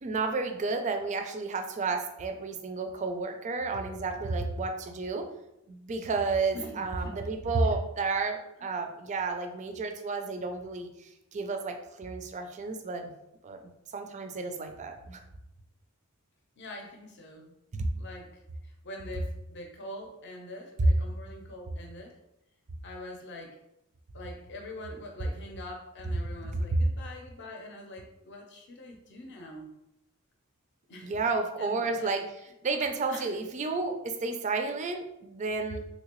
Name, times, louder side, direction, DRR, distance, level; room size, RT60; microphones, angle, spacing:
voice 1, 0.0-5.3 5.7-10.9 11.3-13.1 13.4-13.6 13.9-15.2 17.7-17.9 20.8-20.9 26.4-26.6 31.0-35.8, right 3 dB, 35° right, 6 dB, 0.3 m, -31 dB
voice 2, 6.5-7.8 16.6-17.5 17.9-18.3 18.6-22.1 22.8-23.6 24.1-29.7 30.9-31.1 31.6-32.2 33.1-33.3, left 1 dB, 55° left, 2 dB, 0.6 m, -44 dB
3.2 x 2.7 x 2.9 m, 0.85 s
head